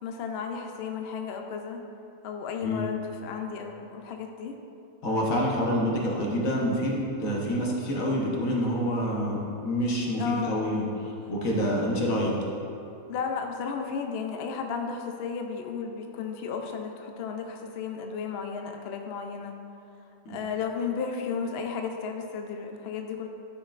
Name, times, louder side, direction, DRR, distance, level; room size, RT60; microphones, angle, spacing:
voice 1, 0.0-1.8 2.2-4.6 10.2-10.6 13.1-19.6 20.3-23.3, left 6 dB, 60° left, 4 dB, 0.7 m, -33 dB
voice 2, 5.0-12.3 20.2-20.3, equal, 75° left, -3 dB, 1.5 m, -27 dB
11.0 x 5.3 x 2.5 m, 2.6 s
omnidirectional pair, 1.4 m